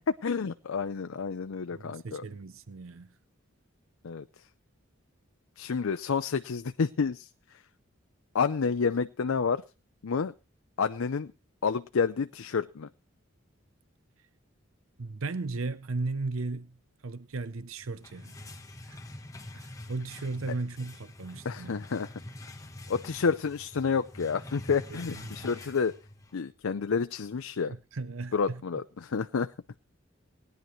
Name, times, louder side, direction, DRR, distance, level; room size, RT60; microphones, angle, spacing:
voice 1, 0.1-2.2 4.0-4.2 5.6-7.3 8.3-9.6 10.0-10.3 10.8-11.3 11.6-12.9 21.4-22.1 22.9-26.0 26.3-27.7 28.3-29.5, left 5 dB, 90° left, 0.5 m, -29 dB
voice 2, 1.7-3.1 15.0-16.8 17.0-18.4 18.9-19.0 19.5-21.7 24.9-25.7 27.7-28.6, right 3 dB, 85° right, 0.7 m, -36 dB
sound 1, 17.8-26.5, left 1 dB, 15° left, 1.1 m, -45 dB
20.0 x 10.5 x 3.1 m
head